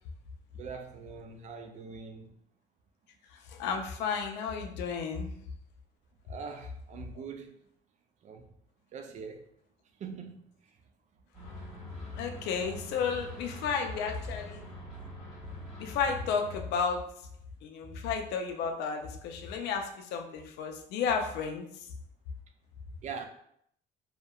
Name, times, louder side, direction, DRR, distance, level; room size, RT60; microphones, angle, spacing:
voice 1, 0.5-2.3 6.3-7.5 8.2-8.4 8.9-9.5 10.0-10.4 12.6-12.8 23.0-23.3, right 5 dB, 45° right, 0.4 m, -42 dB
voice 2, 3.3-5.3 12.1-14.6 15.8-17.1 17.6-21.9, left 6 dB, 85° left, 0.4 m, -33 dB
sound 1, 11.3-16.6, left 1 dB, 5° left, 1.4 m, -45 dB
2.7 x 2.1 x 2.3 m
cardioid pair, 110°, 17 cm